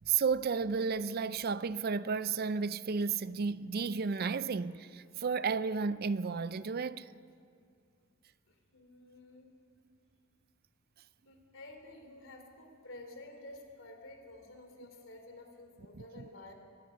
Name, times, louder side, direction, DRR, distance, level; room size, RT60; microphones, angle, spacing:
voice 1, 0.1-7.1 15.9-16.3, right 5 dB, 45° right, 0.5 m, -33 dB
voice 2, 8.5-9.5 11.2-16.5, left 2 dB, 65° left, 3.3 m, -51 dB
23.5 x 19.0 x 6.4 m
head